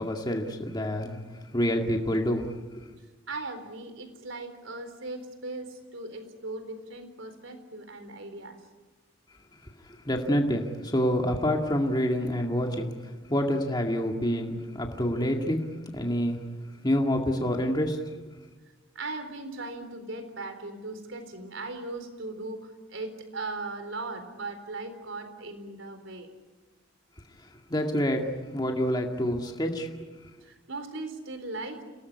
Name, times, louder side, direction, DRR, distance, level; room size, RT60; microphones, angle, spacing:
voice 1, 0.0-2.5 2.8-2.9 9.8-16.4 16.8-18.2 27.4-30.1, equal, 20° left, 2 dB, 2.1 m, -28 dB
voice 2, 3.3-8.6 18.9-26.3 30.4-31.8, right 2 dB, 85° right, 8 dB, 4.0 m, -38 dB
28.0 x 18.5 x 9.8 m, 1.3 s
head